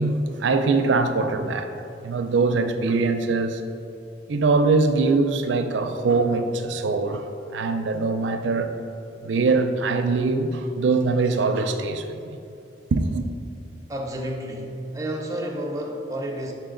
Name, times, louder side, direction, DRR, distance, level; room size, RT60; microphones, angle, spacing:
voice 1, 0.0-3.6 4.3-8.7 9.2-12.2 12.9-13.3, right 3 dB, 90° right, 0.4 m, -22 dB
voice 2, 13.9-16.5, right 1 dB, 20° right, 0.6 m, -30 dB
5.6 x 4.6 x 3.8 m
head